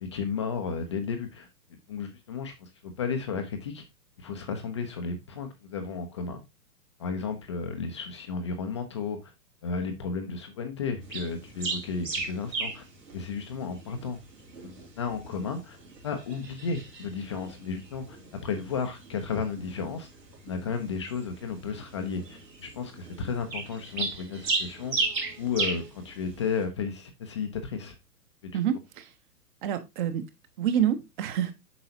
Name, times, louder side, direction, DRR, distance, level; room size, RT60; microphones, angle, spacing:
voice 1, 0.0-3.8 4.2-6.4 7.0-9.3 9.6-12.8 13.1-14.2 14.6-15.8 16.0-20.1 20.4-25.0 25.4-28.0 28.4-28.5, left 5 dB, 20° left, 0.4 m, -33 dB
sound 1, 11.0-26.6, right 3 dB, 80° right, 3.2 m, -37 dB
voice 2, 28.5-29.1 29.6-30.3 30.6-31.5, right 9 dB, 30° right, 0.9 m, -27 dB
7.9 x 5.6 x 2.7 m
figure-of-eight pair, 120°, 49 cm